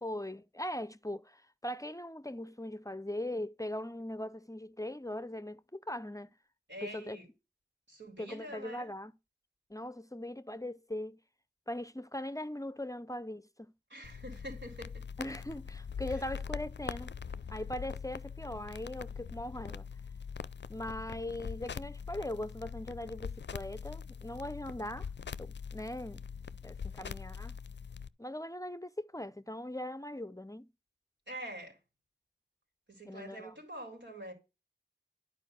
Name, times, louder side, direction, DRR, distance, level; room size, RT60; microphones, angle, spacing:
voice 1, 0.0-6.3 6.8-7.2 8.2-9.1 9.7-11.2 11.7-13.7 15.2-17.1 17.5-19.9 20.7-25.1 25.4-26.2 26.6-27.6 28.2-30.7 33.1-33.5, left 1 dB, 20° left, 0.5 m, -40 dB
voice 2, 6.7-7.3 7.9-8.9 13.9-15.1 31.3-31.8 32.9-34.3, right 1 dB, 85° right, 3.9 m, -45 dB
sound 1, 14.0-28.1, left 6 dB, 80° left, 0.4 m, -43 dB
10.5 x 4.9 x 6.4 m
wide cardioid pair, 40°, 18 cm